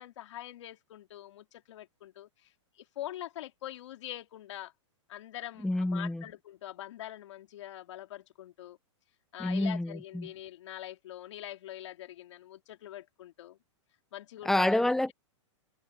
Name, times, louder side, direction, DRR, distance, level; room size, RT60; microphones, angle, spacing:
voice 1, 0.0-4.7 5.1-8.8 9.3-13.6 14.1-14.9, left 13 dB, 65° left, 3.0 m, -44 dB
voice 2, 5.6-6.2 9.4-10.3 14.5-15.1, left 1 dB, ahead, 0.4 m, -28 dB
hypercardioid pair, 145°, 16 cm